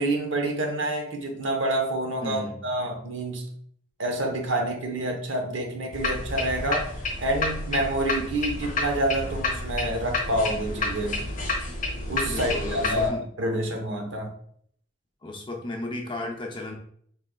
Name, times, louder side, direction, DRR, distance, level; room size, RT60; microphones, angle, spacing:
voice 1, 0.0-3.5 4.0-11.3 12.1-14.3, right 1 dB, 80° right, 2 dB, 0.9 m, -28 dB
voice 2, 2.2-2.6 12.3-13.2 15.2-16.7, left 2 dB, 25° left, 1 dB, 0.6 m, -34 dB
sound 1, 5.9-13.1, left 2 dB, 40° left, 0.9 m, -30 dB
4.8 x 3.2 x 2.3 m, 0.63 s
head